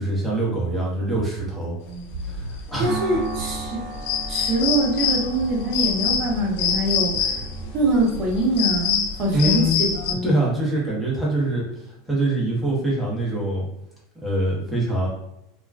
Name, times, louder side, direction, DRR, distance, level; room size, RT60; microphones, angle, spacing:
voice 1, 0.0-1.7 2.3-3.2 9.3-9.8 10.2-13.7 14.2-15.1, right 1 dB, ahead, -6 dB, 0.8 m, -24 dB
sound 1, 1.1-8.7, right 3 dB, 15° right, 1.2 m, -39 dB
sound 2, 2.1-10.1, left 7 dB, 55° left, 0.3 m, -26 dB
voice 2, 2.8-3.8 4.3-7.1 7.7-10.3, right 1 dB, 35° right, -2 dB, 0.7 m, -23 dB
sound 3, 2.8-11.3, right 5 dB, 65° right, 0.4 m, -38 dB
2.4 x 2.2 x 3.3 m, 0.84 s
supercardioid pair, 165°, 0 cm